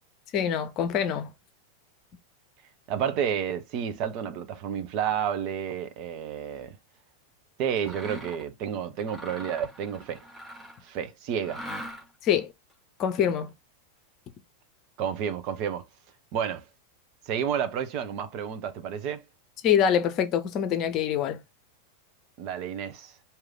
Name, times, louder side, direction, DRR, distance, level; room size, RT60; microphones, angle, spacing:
voice 1, 0.3-1.3 12.2-12.5 13.0-13.5 19.6-21.4, left 8 dB, 35° left, 0.8 m, -25 dB
voice 2, 2.9-6.8 7.6-10.2 10.8-11.6 15.0-15.8 16.3-16.6 17.3-19.2 22.4-23.1, right 8 dB, 40° right, 0.9 m, -30 dB
Mechanisms, 7.8-8.5 9.0-10.9 11.4-12.3, equal, ahead, 2.2 m, -41 dB
4.9 x 2.9 x 3.7 m
figure-of-eight pair, 90°, 0 cm